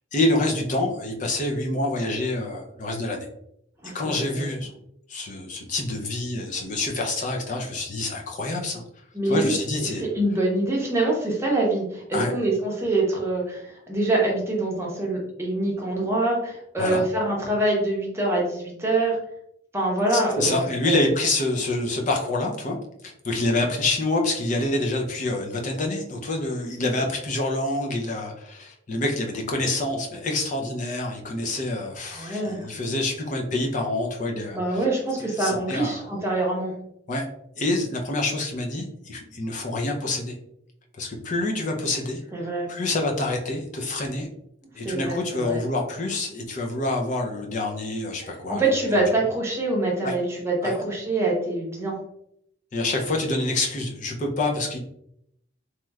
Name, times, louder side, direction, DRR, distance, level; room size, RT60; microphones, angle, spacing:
voice 1, 0.1-3.3 3.9-4.7 5.1-8.8 9.2-10.0 12.1-12.3 16.8-17.0 20.1-22.8 23.0-34.8 35.2-36.1 37.1-37.3 37.6-40.4 41.0-42.2 42.7-44.3 44.7-49.0 50.0-50.1 50.6-50.7 52.7-54.8, left 2 dB, 40° left, 2 dB, 0.5 m, -27 dB
voice 2, 3.8-4.5 9.1-9.5 10.0-19.2 19.7-21.1 32.1-32.7 34.5-36.7 42.3-42.7 44.8-45.6 48.5-52.0, right 2 dB, 15° right, -2 dB, 0.7 m, -25 dB
3.1 x 2.9 x 2.3 m, 0.76 s
head